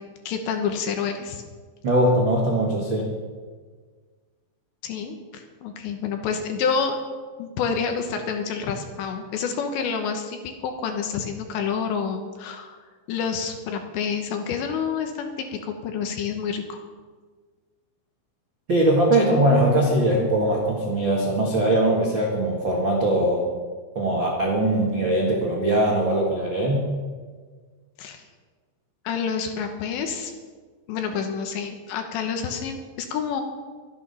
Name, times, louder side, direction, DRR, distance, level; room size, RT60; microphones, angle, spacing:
voice 1, 0.3-1.4 4.8-7.0 7.4-12.8 13.1-16.8 28.0-28.2 29.0-30.3 30.9-33.4, left 6 dB, 70° left, 5 dB, 3.1 m, -28 dB
voice 2, 1.8-3.1 18.7-23.4 23.9-26.9, right 1 dB, 55° right, -3 dB, 1.3 m, -21 dB
23.0 x 8.9 x 5.6 m, 1.5 s
omnidirectional pair, 5.8 m